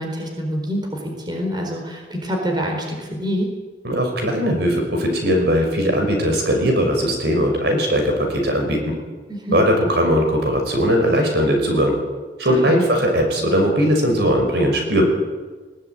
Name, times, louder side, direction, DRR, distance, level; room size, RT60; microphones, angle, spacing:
voice 1, 0.0-3.5 9.3-9.6 12.4-12.8, equal, 25° right, 2 dB, 4.5 m, -26 dB
voice 2, 3.8-8.9 9.5-11.9 12.4-15.0, equal, 65° right, 3 dB, 5.6 m, -19 dB
20.5 x 19.0 x 9.1 m, 1.4 s
head